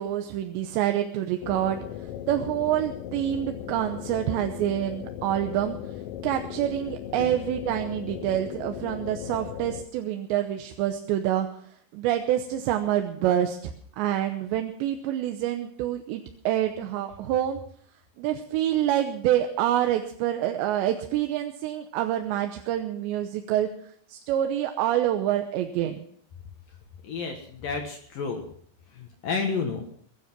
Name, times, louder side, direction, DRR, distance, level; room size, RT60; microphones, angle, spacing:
voice 1, 0.0-5.8 6.2-17.6 18.2-26.1, right 11 dB, 90° right, 6 dB, 3.1 m, -27 dB
sound 1, 1.4-9.8, left 11 dB, 80° left, 1.9 m, -37 dB
voice 2, 27.0-28.4 28.9-29.9, left 5 dB, 60° left, 3 dB, 2.8 m, -31 dB
22.0 x 10.0 x 6.0 m, 0.62 s
omnidirectional pair, 4.9 m